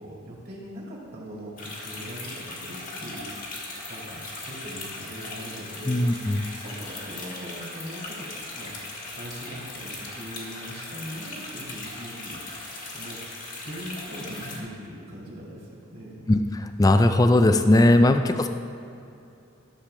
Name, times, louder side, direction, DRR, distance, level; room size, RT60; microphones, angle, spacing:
voice 1, 0.0-6.2 6.5-13.2 13.6-16.2, equal, 50° right, -4 dB, 2.3 m, -41 dB
sound 1, 1.6-14.6, left 2 dB, 40° left, 1.5 m, -38 dB
voice 2, 5.9-6.5 16.3-18.5, left 1 dB, 20° left, 8 dB, 0.3 m, -19 dB
13.0 x 6.7 x 3.3 m, 2.7 s
head